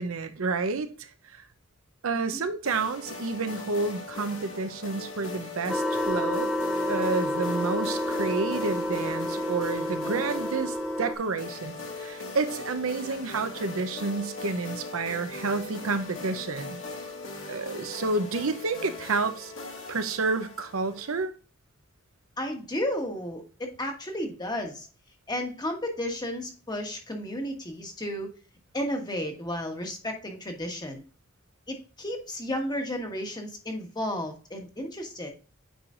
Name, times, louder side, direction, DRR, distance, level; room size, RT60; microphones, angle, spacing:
voice 1, 0.0-1.4 2.0-6.5 6.9-16.8 17.5-19.5 19.9-21.3, right 3 dB, 80° right, 0.7 m, -30 dB
sound 1, 2.6-21.2, left 2 dB, 65° left, 2.0 m, -40 dB
sound 2, 5.7-11.1, left 1 dB, ahead, 0.4 m, -29 dB
voice 2, 22.4-24.9 25.3-28.3 28.7-31.0 31.7-35.3, left 1 dB, 20° left, 1.3 m, -33 dB
8.9 x 4.9 x 2.5 m
head